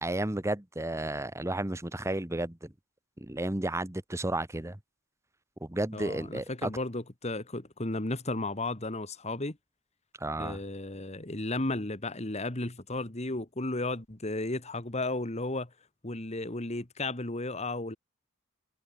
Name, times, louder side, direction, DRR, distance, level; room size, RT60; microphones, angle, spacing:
voice 1, 0.0-2.7 3.2-4.8 5.6-6.7 10.2-10.6, right 1 dB, 15° right, 1.1 m, -32 dB
voice 2, 5.9-9.6 10.4-15.7 16.0-18.0, left 2 dB, 30° left, 1.8 m, -34 dB
head